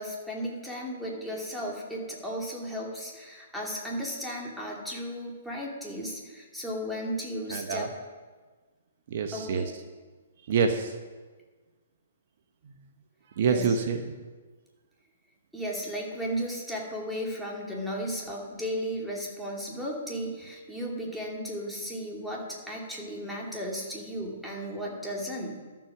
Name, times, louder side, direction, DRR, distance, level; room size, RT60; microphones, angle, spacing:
voice 1, 0.0-7.9 9.3-9.7 13.4-13.7 15.5-25.6, equal, ahead, -3 dB, 2.3 m, -35 dB
voice 2, 7.5-7.9 9.1-9.7 10.5-10.9 13.3-14.2, right 5 dB, 55° right, 6 dB, 1.0 m, -27 dB
12.5 x 7.5 x 6.0 m, 1.4 s
hypercardioid pair, 145°, 0 cm